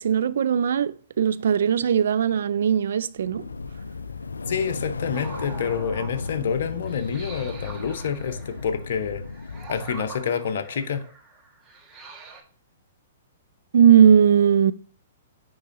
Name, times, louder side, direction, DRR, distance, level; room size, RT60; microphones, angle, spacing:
voice 1, 0.0-3.5 13.7-14.7, right 8 dB, 70° right, 0.3 m, -19 dB
sound 1, 3.2-10.2, left 4 dB, 85° left, 0.4 m, -35 dB
voice 2, 4.5-9.2 9.7-11.0, left 7 dB, 65° left, 0.7 m, -28 dB
sound 2, 5.1-12.4, right 4 dB, 20° right, 1.4 m, -44 dB
9.7 x 3.8 x 2.5 m
hypercardioid pair, 120°, 0 cm